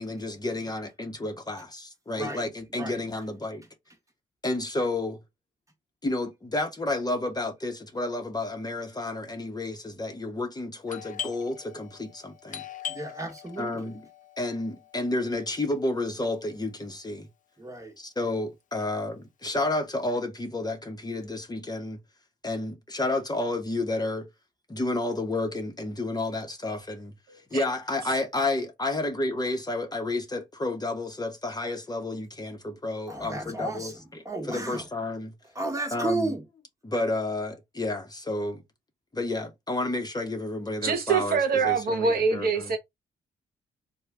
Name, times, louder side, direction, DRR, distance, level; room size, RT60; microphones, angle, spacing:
voice 1, 0.0-3.6 4.4-5.2 6.0-12.6 13.6-14.0 14.4-17.3 18.0-22.0 22.4-24.3 24.7-27.1 27.5-35.3 35.9-36.3 36.8-38.6 39.1-41.4 41.6-42.7, left 2 dB, 20° left, 1.0 m, -31 dB
voice 2, 2.1-2.5 2.7-3.0 12.9-13.9 17.6-17.9 33.1-34.9 35.5-36.5, right 2 dB, 15° right, 1.3 m, -33 dB
Doorbell, 10.9-16.3, left 9 dB, 45° left, 0.6 m, -42 dB
voice 3, 40.8-42.8, right 5 dB, 55° right, 1.0 m, -24 dB
3.2 x 2.3 x 3.4 m
supercardioid pair, 55°, 18 cm